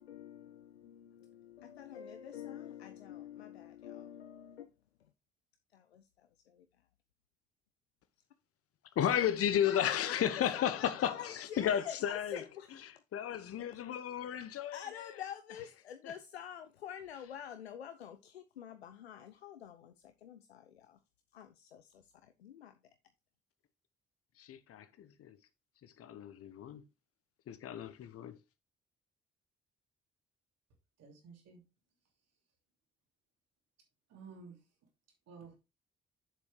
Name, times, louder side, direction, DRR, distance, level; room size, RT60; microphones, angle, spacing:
voice 1, 0.0-4.7 5.7-6.7 9.6-13.0 14.7-21.0 21.3-22.8, left 9 dB, 85° left, 0.5 m, -47 dB
voice 2, 9.0-12.4 13.1-14.8 24.4-25.4 26.0-26.8 27.5-28.4, left 10 dB, 50° left, 1.0 m, -33 dB
voice 3, 31.0-31.6 34.1-34.6 35.3-35.6, right 5 dB, 55° right, 3.0 m, -52 dB
8.7 x 7.2 x 3.1 m
figure-of-eight pair, 40°, 31 cm